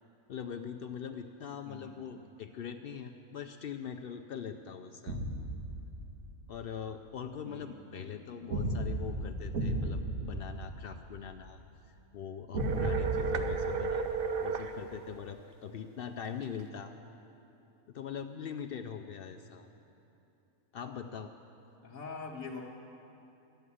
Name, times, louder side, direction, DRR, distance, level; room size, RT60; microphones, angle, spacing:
voice 1, 0.3-5.2 6.5-11.6 12.1-16.9 17.9-19.7 20.7-21.3, left 7 dB, 85° left, 6 dB, 0.5 m, -42 dB
voice 2, 1.6-2.0 7.4-8.4 13.8-14.1 21.8-22.6, left 4 dB, 70° left, -5 dB, 1.5 m, -45 dB
sound 1, 5.1-6.4 8.5-11.5 12.5-14.7, right 1 dB, 70° right, 1.8 m, -35 dB
sound 2, 12.6-14.7, right 5 dB, 50° right, 0.7 m, -33 dB
12.5 x 8.1 x 9.7 m, 2.9 s
omnidirectional pair, 1.5 m